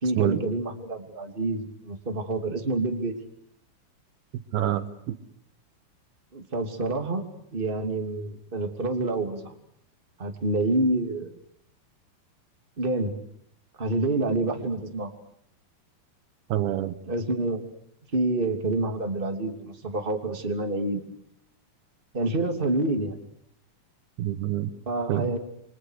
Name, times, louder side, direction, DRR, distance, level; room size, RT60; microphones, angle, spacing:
voice 1, 0.0-3.1 6.3-7.2 7.5-9.5 10.2-11.3 12.8-13.1 13.8-15.1 17.1-17.6 18.1-21.0 22.1-23.2 24.9-25.4, right 2 dB, 15° right, 5 dB, 2.7 m, -27 dB
voice 2, 4.5-5.2 16.5-16.9 24.2-24.7 25.1-25.3, right 12 dB, 85° right, 11 dB, 3.3 m, -26 dB
30.0 x 25.0 x 6.6 m, 0.72 s
omnidirectional pair, 4.3 m